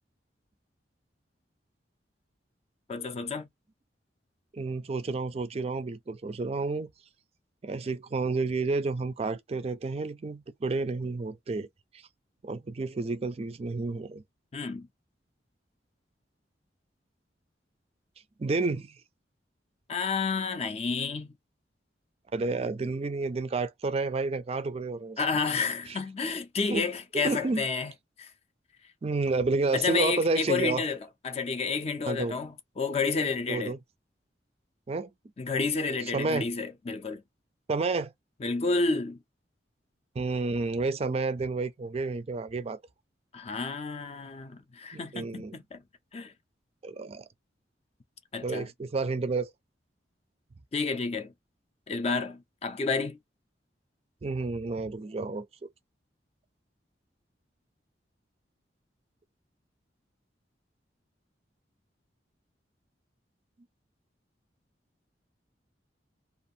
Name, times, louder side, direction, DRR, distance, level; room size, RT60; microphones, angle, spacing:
voice 1, 2.9-3.5 14.5-14.9 19.9-21.3 25.2-27.9 28.2-28.3 29.7-31.0 31.2-33.7 35.4-37.2 38.4-39.2 43.3-45.8 46.1-46.3 48.3-48.7 50.7-51.3 51.9-53.2, left 4 dB, 35° left, 0.4 m, -30 dB
voice 2, 4.5-6.9 7.6-11.7 12.4-14.2 18.4-19.0 22.3-25.2 25.9-26.0 26.7-26.9 27.1-27.6 29.0-30.8 32.1-32.4 33.5-33.8 34.9-35.1 36.1-36.5 37.7-38.1 40.2-42.8 44.9-45.6 46.8-47.2 48.4-49.5 54.2-55.5, right 3 dB, 35° right, 0.4 m, -30 dB
2.6 x 2.4 x 2.6 m
head